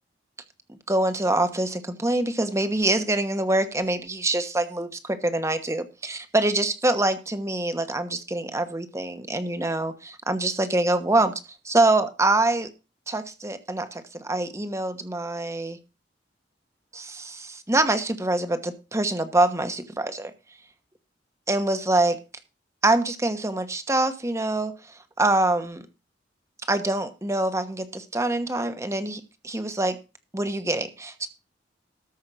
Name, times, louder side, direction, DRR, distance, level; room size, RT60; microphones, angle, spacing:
voice 1, 0.9-11.3 11.6-12.7 13.1-15.8 16.9-20.3 21.5-22.2 22.8-24.7 25.2-25.8 26.7-30.0 30.3-31.3, right 2 dB, 15° right, 9 dB, 1.2 m, -25 dB
13.5 x 5.6 x 6.2 m, 0.30 s
head